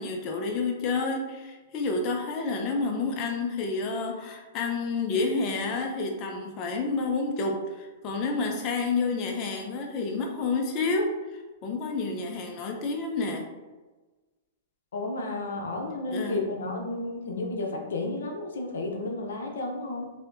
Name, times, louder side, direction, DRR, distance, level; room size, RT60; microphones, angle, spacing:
voice 1, 0.0-13.4 16.1-16.4, left 3 dB, 35° left, 2 dB, 0.5 m, -29 dB
voice 2, 14.9-20.1, left 2 dB, 90° left, 2 dB, 0.6 m, -32 dB
3.4 x 2.7 x 2.6 m, 1.2 s
hypercardioid pair, 140°, 0 cm